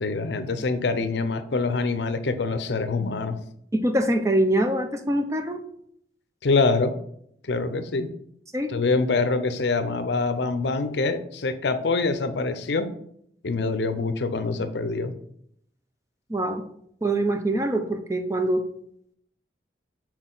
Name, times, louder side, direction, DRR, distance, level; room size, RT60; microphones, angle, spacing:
voice 1, 0.0-3.4 6.4-6.9 7.5-8.1 8.7-12.9 13.4-15.1, left 3 dB, 70° left, 10 dB, 0.6 m, -25 dB
voice 2, 3.7-5.6 8.5-8.7 16.3-16.6 17.0-18.6, right 1 dB, 15° right, 7 dB, 0.5 m, -24 dB
6.1 x 4.5 x 3.8 m, 0.70 s
head